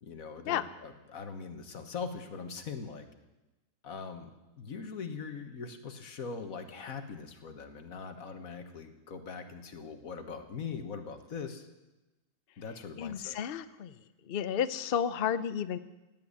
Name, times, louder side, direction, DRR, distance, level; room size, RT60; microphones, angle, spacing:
voice 1, 0.0-3.1 3.8-4.3 4.6-11.7 12.6-13.4, left 5 dB, 50° left, 7 dB, 1.7 m, -41 dB
voice 2, 13.0-13.9 14.3-15.8, left 8 dB, 80° left, 13 dB, 0.5 m, -32 dB
16.5 x 9.0 x 9.7 m, 1.0 s
omnidirectional pair, 1.9 m